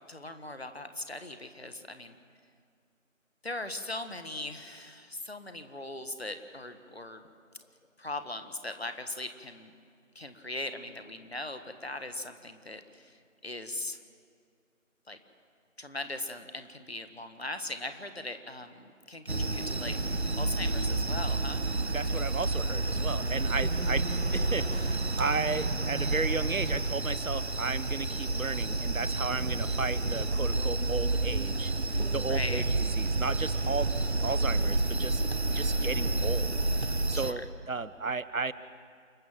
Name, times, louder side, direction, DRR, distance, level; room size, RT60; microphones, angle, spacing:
voice 1, 0.1-2.1 3.4-7.2 8.0-9.7 10.1-13.2 13.4-14.0 15.1-15.2 15.8-21.6 23.9-24.0 32.2-32.7 37.1-37.5, left 2 dB, 50° left, 9 dB, 1.6 m, -39 dB
sound 1, 19.3-37.3, right 2 dB, 55° right, 0.9 m, -29 dB
voice 2, 21.9-33.9 34.2-35.2 35.5-38.5, right 4 dB, 80° right, 16 dB, 1.0 m, -34 dB
28.5 x 12.5 x 7.4 m, 2.2 s
figure-of-eight pair, 175°, 40 cm